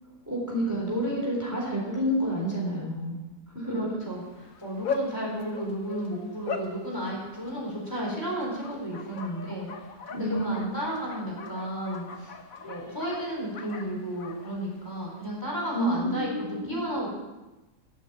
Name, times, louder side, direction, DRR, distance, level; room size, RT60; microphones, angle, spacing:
voice 1, 0.3-3.2 3.5-3.8 5.2-5.5 10.1-10.7 15.7-16.8, equal, 10° right, -4 dB, 4.0 m, -29 dB
voice 2, 3.7-9.7 10.1-12.3 12.6-17.1, equal, 15° left, -4 dB, 4.2 m, -33 dB
Bark, 4.1-15.4, left 4 dB, 70° left, 1.7 m, -40 dB
11.5 x 10.5 x 8.2 m, 1.1 s
omnidirectional pair, 1.5 m